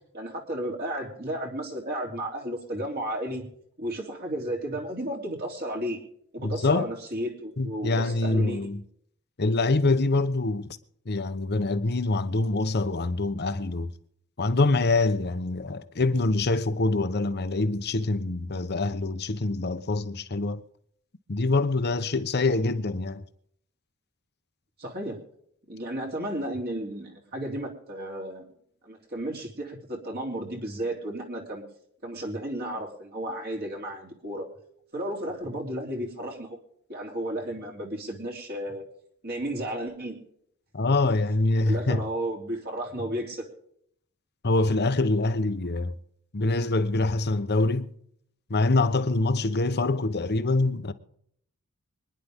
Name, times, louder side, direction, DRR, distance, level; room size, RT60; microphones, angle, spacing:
voice 1, 0.1-3.5 3.8-6.0 6.3-8.6 24.8-25.2 25.7-28.4 28.8-31.6 32.0-34.4 34.9-36.6 36.9-38.8 39.2-40.2 41.0-41.1 41.6-43.4, right 1 dB, 45° right, 3.2 m, -33 dB
voice 2, 6.4-6.9 7.6-8.8 9.4-10.8 11.1-13.9 14.4-20.6 21.3-23.2 40.7-42.0 44.4-45.9 46.3-47.9 48.5-50.9, left 2 dB, 50° left, 0.9 m, -25 dB
25.5 x 10.5 x 3.6 m
head